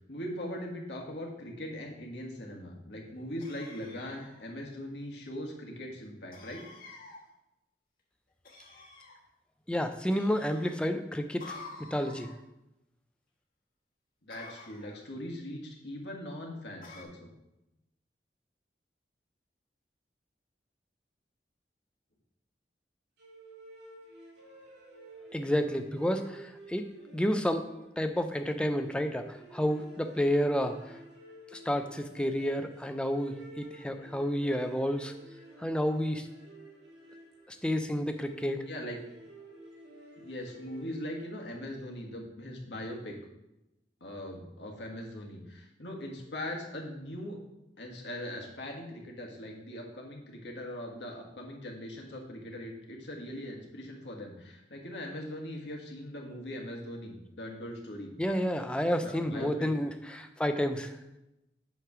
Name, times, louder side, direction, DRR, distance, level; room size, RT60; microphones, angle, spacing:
voice 1, 0.1-6.6 14.2-17.3 38.7-39.0 40.2-43.2 44.0-47.4 47.8-58.1 59.0-59.7, left 1 dB, 80° left, 0 dB, 1.5 m, -40 dB
sound 1, 3.4-4.5 6.3-7.2 8.4-9.2 10.1-10.8 11.4-12.4 14.3-15.1 16.8-17.0, left 3 dB, 50° left, 1.1 m, -49 dB
voice 2, 9.7-11.6 11.9-12.3 25.3-26.9 27.1-27.6 28.0-30.8 31.5-35.1 35.6-36.3 37.5-38.6 58.2-60.9, equal, 5° left, 7 dB, 0.4 m, -30 dB
sound 2, 23.2-41.7, right 2 dB, 80° right, 2.0 m, -52 dB
8.0 x 3.2 x 5.9 m, 0.92 s
head